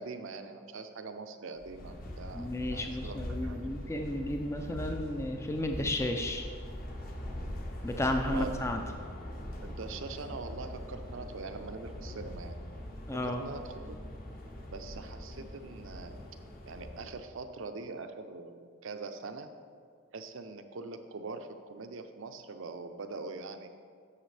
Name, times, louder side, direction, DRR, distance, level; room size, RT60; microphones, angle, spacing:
voice 1, 0.0-3.7 8.3-8.5 9.6-12.5 13.2-14.0 14.7-16.2 16.7-19.5 20.1-23.7, right 3 dB, 60° right, 8 dB, 0.6 m, -43 dB
sound 1, 1.6-17.3, left 1 dB, 40° left, 1.0 m, -42 dB
voice 2, 2.4-6.4 7.8-8.8 13.1-13.4, left 1 dB, 10° left, 4 dB, 0.4 m, -33 dB
11.5 x 7.2 x 3.3 m, 2.1 s
head